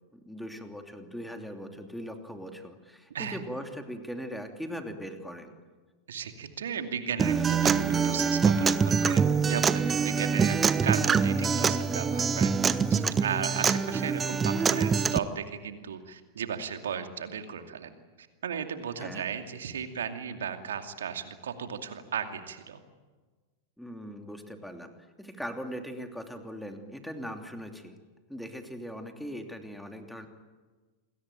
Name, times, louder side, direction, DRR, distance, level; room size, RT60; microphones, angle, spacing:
voice 1, 0.1-5.5 19.0-19.3 23.8-24.9 25.2-28.0 28.3-30.3, equal, ahead, 5 dB, 3.0 m, -40 dB
voice 2, 6.1-12.6 12.9-17.9 18.2-22.8, right 7 dB, 65° right, 7 dB, 2.5 m, -35 dB
Acoustic guitar, 7.2-15.2, right 6 dB, 20° right, 1.0 m, -25 dB
28.0 x 21.5 x 9.0 m, 1.3 s
figure-of-eight pair, 90°, 0 cm